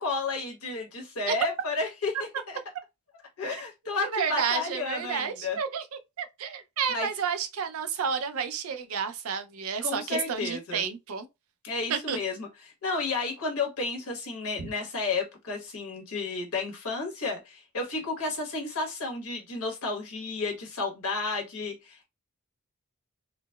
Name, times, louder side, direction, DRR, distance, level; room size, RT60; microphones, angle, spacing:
voice 1, 0.0-2.2 2.5-2.6 3.4-5.6 6.9-7.1 9.8-10.8 11.6-12.5 12.8-22.1, left 3 dB, 75° left, 1.1 m, -32 dB
voice 2, 4.0-11.3 11.9-12.2 14.6-14.7, right 6 dB, 65° right, 0.5 m, -31 dB
3.8 x 2.0 x 2.2 m
head